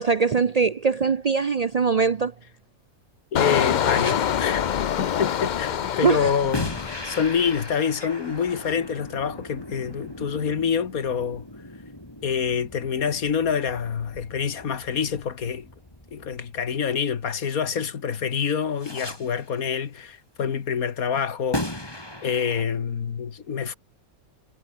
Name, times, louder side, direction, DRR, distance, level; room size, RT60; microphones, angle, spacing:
voice 1, 0.0-2.3 6.0-6.3, right 5 dB, 60° right, 0.4 m, -22 dB
voice 2, 3.3-4.6 5.0-11.4 12.2-15.7 16.1-23.7, left 7 dB, 80° left, 2.0 m, -27 dB
Engine, 3.4-8.0 8.4-8.7, left 9 dB, 60° left, 0.4 m, -26 dB
sound 1, 3.8-4.7 6.5-17.4 18.8-19.6 21.5-22.7, left 1 dB, 15° left, 4.1 m, -37 dB
omnidirectional pair, 1.5 m